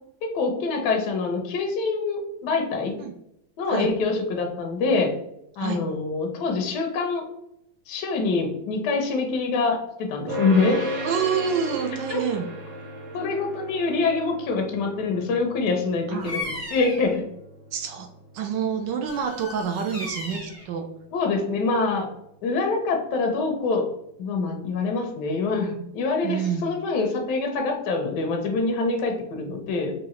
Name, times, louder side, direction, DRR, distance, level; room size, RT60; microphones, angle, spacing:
voice 1, 0.2-2.9 3.6-5.1 5.6-7.3 7.9-10.8 12.1-12.2 13.1-16.4 16.7-17.2 21.1-22.1 22.4-23.9 24.2-29.9, left 3 dB, 70° left, 3 dB, 1.0 m, -25 dB
sound 1, 10.3-21.6, right 1 dB, 55° right, 0.8 m, -36 dB
voice 2, 11.0-12.4 16.1-16.3 17.7-18.1 18.3-20.8 26.2-26.6, right 7 dB, 75° right, 4 dB, 1.0 m, -27 dB
Bird vocalization bird call bird song, 16.2-17.2 19.0-20.7, left 2 dB, 10° right, 0.7 m, -35 dB
4.7 x 2.5 x 3.0 m, 0.81 s
omnidirectional pair, 2.3 m